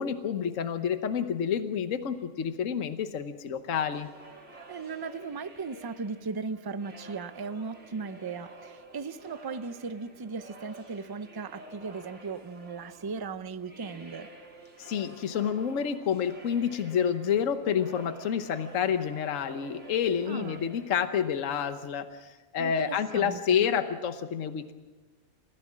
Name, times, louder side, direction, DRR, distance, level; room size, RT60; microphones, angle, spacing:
voice 1, 0.0-4.1 14.8-24.7, left 8 dB, 60° left, 9 dB, 1.3 m, -29 dB
sound 1, 3.9-21.8, right 2 dB, 50° right, 3.1 m, -50 dB
voice 2, 4.7-14.3 20.3-20.6 22.6-23.7, right 4 dB, 30° right, 11 dB, 0.4 m, -37 dB
28.0 x 16.0 x 7.4 m, 1.3 s
omnidirectional pair, 1.5 m